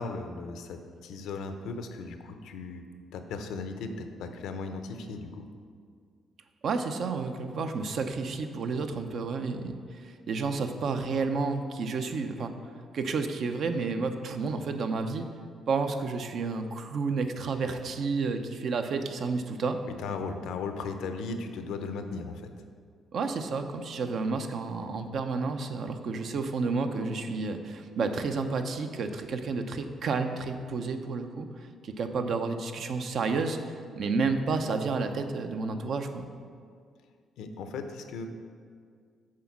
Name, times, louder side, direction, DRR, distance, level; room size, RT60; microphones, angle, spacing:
voice 1, 0.0-2.8 3.1-5.5 19.8-22.5 37.4-38.3, left 4 dB, 85° left, 7 dB, 0.6 m, -37 dB
voice 2, 6.6-12.5 12.9-15.3 15.7-19.8 23.1-33.6 34.0-36.3, right 4 dB, 65° right, 7 dB, 0.6 m, -31 dB
7.5 x 4.3 x 6.0 m, 2.1 s
cardioid pair, 90°, 0 cm